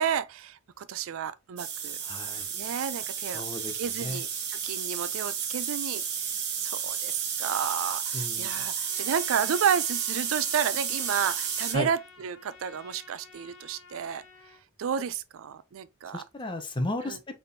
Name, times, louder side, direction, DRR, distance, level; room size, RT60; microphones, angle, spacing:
voice 1, 0.0-2.0 2.5-3.4 3.7-6.0 6.6-14.2 14.8-16.2 17.0-17.2, right 8 dB, 80° right, 0.4 m, -31 dB
sound 1, 1.6-11.7, right 7 dB, 55° right, 0.9 m, -32 dB
voice 2, 2.0-2.5 3.3-3.7 4.0-4.2 8.1-8.5 11.7-11.9 16.1-17.2, left 2 dB, 25° left, 0.7 m, -33 dB
Trumpet, 8.8-14.6, left 4 dB, 75° left, 0.9 m, -52 dB
4.1 x 3.5 x 2.6 m
head